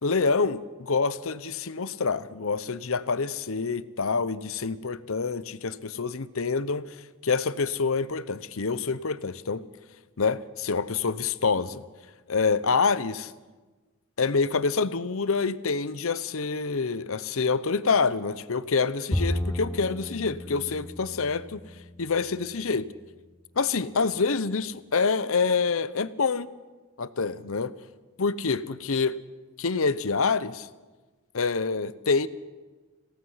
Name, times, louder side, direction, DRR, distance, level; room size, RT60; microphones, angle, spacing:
voice 1, 0.0-7.0 7.2-9.6 10.2-11.8 12.3-13.3 14.2-21.6 22.0-22.9 23.6-26.5 27.0-27.8 28.2-29.2 29.6-30.7 31.3-32.3, left 4 dB, 70° left, 15 dB, 0.8 m, -26 dB
Bowed string instrument, 19.1-22.5, left 1 dB, 10° left, 0.6 m, -33 dB
27.0 x 17.0 x 5.7 m, 1.3 s
head